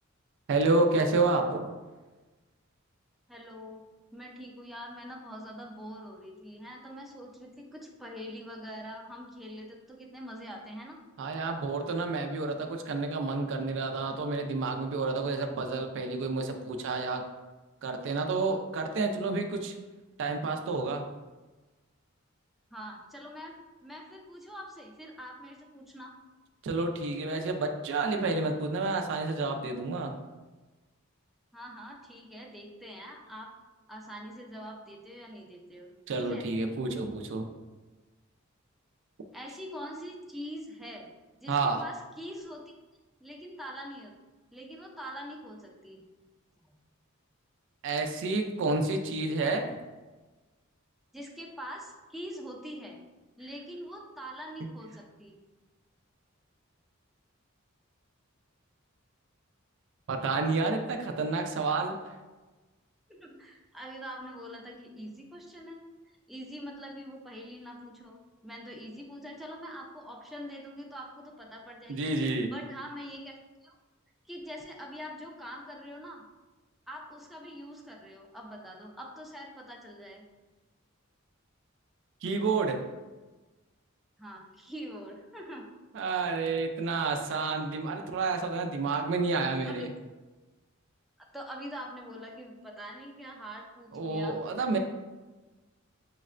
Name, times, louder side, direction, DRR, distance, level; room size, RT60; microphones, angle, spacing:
voice 1, 0.5-1.7 11.2-17.2 17.8-19.7 20.2-21.0 26.6-30.1 36.1-37.4 41.5-41.8 47.8-49.7 60.1-62.0 71.9-72.5 82.2-82.8 85.9-89.9 93.9-94.8, right 3 dB, 60° right, 4 dB, 0.4 m, -29 dB
voice 2, 3.3-3.8 4.1-11.0 22.7-23.6 23.8-26.1 31.5-33.5 33.9-36.5 39.3-41.1 41.4-42.7 43.2-44.1 44.5-46.0 46.6-46.7 51.1-53.0 53.4-55.4 63.1-65.8 66.3-73.4 73.6-73.8 74.3-76.2 76.9-80.2 84.2-85.7 89.7-89.8 91.2-94.4, equal, ahead, -1 dB, 0.4 m, -44 dB
6.2 x 2.1 x 2.4 m, 1.2 s
head